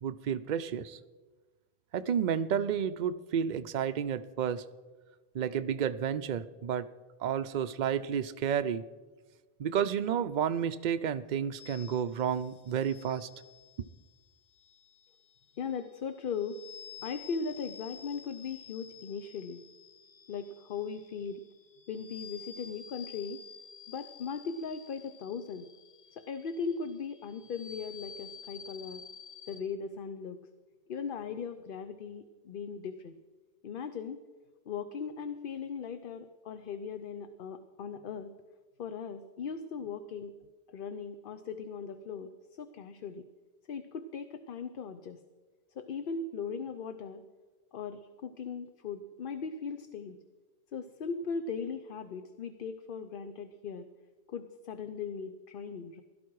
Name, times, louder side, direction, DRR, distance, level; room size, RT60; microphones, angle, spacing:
voice 1, 0.0-1.0 1.9-4.6 5.3-6.8 7.2-8.8 9.6-13.3, right 8 dB, 55° right, 13 dB, 0.6 m, -31 dB
sound 1, 11.6-29.6, left 7 dB, 75° left, 1.2 m, -51 dB
voice 2, 15.6-16.6 17.0-19.6 20.3-21.4 21.9-23.4 23.9-25.7 26.1-29.0 29.5-30.4 30.9-33.1 33.6-34.2 34.7-38.3 38.8-40.3 40.7-43.3 43.7-45.2 45.8-47.2 47.7-50.2 50.7-53.9 54.3-56.0, left 5 dB, 60° left, 9 dB, 0.8 m, -38 dB
16.5 x 12.0 x 4.7 m, 1.3 s
omnidirectional pair, 1.1 m